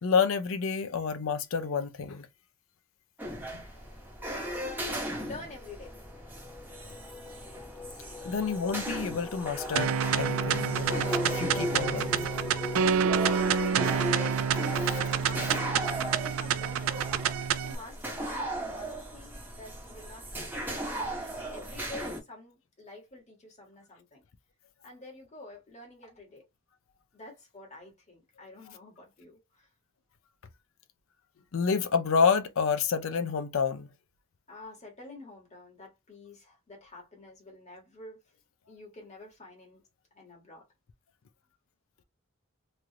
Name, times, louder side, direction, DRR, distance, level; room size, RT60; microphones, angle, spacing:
voice 1, 0.0-2.3 3.5-3.6 8.2-12.3 31.5-33.9, left 5 dB, 70° left, 0.5 m, -29 dB
sound 1, 3.2-22.2, right 1 dB, 10° right, 0.9 m, -37 dB
sound 2, 3.9-4.0 4.2-15.8, left 3 dB, 10° left, 0.3 m, -41 dB
voice 2, 4.6-5.9 13.2-17.2 17.6-24.2 24.8-26.4 27.1-29.7 34.5-38.2 38.7-39.8 40.1-40.6, left 2 dB, 35° left, 1.4 m, -48 dB
sound 3, 9.8-17.8, right 7 dB, 75° right, 0.3 m, -28 dB
3.1 x 2.5 x 2.8 m
head